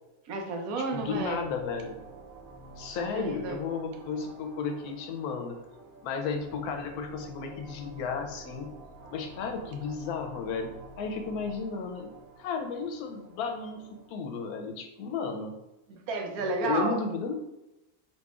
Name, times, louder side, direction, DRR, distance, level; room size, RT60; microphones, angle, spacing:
voice 1, 0.3-1.4 3.0-3.6 15.9-17.0, right 3 dB, 80° right, 3 dB, 1.1 m, -32 dB
voice 2, 0.8-1.9 2.7-5.6 6.0-8.7 9.1-12.1 12.4-15.5 16.6-17.3, left 5 dB, 85° left, 5 dB, 1.1 m, -33 dB
sound 1, 0.8-14.2, right 3 dB, 55° right, 0.3 m, -49 dB
4.1 x 2.7 x 2.4 m, 0.94 s
omnidirectional pair, 1.5 m